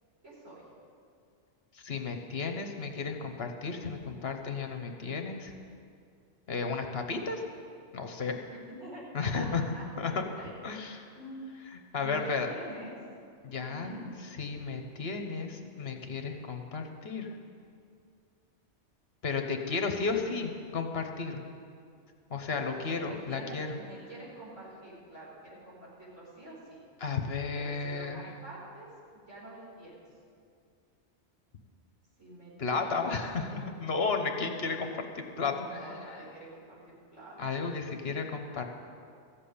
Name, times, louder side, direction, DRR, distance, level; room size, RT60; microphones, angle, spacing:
voice 1, 0.2-0.6 8.5-9.0 9.4-9.5 9.7-10.6 11.1-11.4 12.0-13.0 13.6-14.1 22.6-26.8 27.6-28.9 29.1-30.0 32.2-33.1 35.3-37.8, right 1 dB, 90° right, -6 dB, 4.9 m, -47 dB
voice 2, 1.7-5.5 6.5-7.4 7.9-8.4 9.1-9.6 10.0-10.1 10.6-11.1 11.9-12.5 13.4-13.9 14.4-17.3 19.2-21.4 22.3-23.8 27.0-28.2 32.6-35.9 37.4-38.7, left 4 dB, 60° left, 5 dB, 1.3 m, -33 dB
15.0 x 7.4 x 8.6 m, 2.3 s
omnidirectional pair, 1.2 m